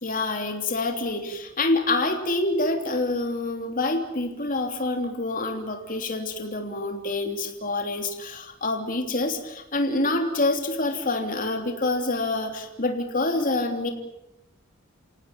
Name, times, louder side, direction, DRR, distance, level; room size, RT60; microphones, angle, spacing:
voice 1, 0.0-13.9, left 2 dB, 40° left, 4 dB, 3.2 m, -27 dB
28.5 x 18.0 x 9.0 m, 0.89 s
head